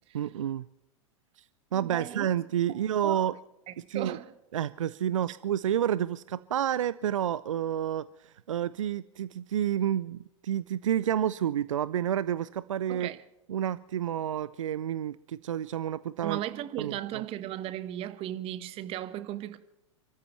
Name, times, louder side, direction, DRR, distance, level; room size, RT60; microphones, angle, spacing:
voice 1, 0.1-0.7 1.4-1.5 1.7-3.3 3.9-4.2 4.5-13.1 13.5-16.4 16.8-17.2, right 10 dB, 70° right, 0.5 m, -30 dB
voice 2, 1.7-2.3 2.7-3.3 3.7-4.3 12.9-13.2 16.2-19.6, right 13 dB, 35° right, 1.1 m, -36 dB
29.5 x 13.5 x 3.1 m
figure-of-eight pair, 95°, 17 cm